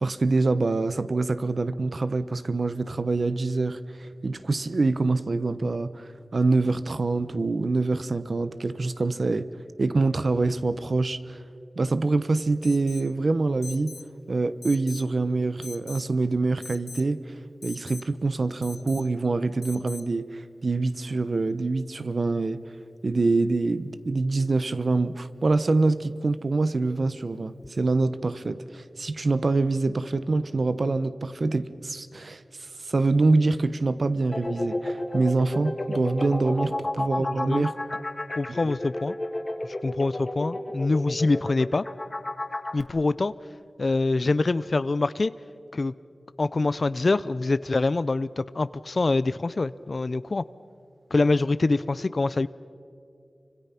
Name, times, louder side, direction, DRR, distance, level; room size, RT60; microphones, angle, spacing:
voice 1, 0.0-9.5 9.8-11.4 11.8-14.0 14.3-17.3 17.6-22.6 23.0-32.4 32.8-37.7, right 3 dB, 60° right, 13 dB, 0.9 m, -25 dB
Alarm, 12.6-13.1 13.6-14.1 14.6-15.1 15.6-16.1 16.6-17.1 17.6-18.1 18.6-19.1 19.6-20.1, left 4 dB, 75° left, 0.8 m, -42 dB
sound 1, 34.3-42.8, left 1 dB, 35° left, 2.2 m, -31 dB
voice 2, 37.2-37.7 38.4-39.1 39.8-41.8 42.7-43.3 43.8-45.3 45.7-45.9 46.4-50.4 51.1-52.5, left 3 dB, 55° left, 16 dB, 0.5 m, -25 dB
28.0 x 25.5 x 5.8 m, 2.5 s
wide cardioid pair, 80°, 0 cm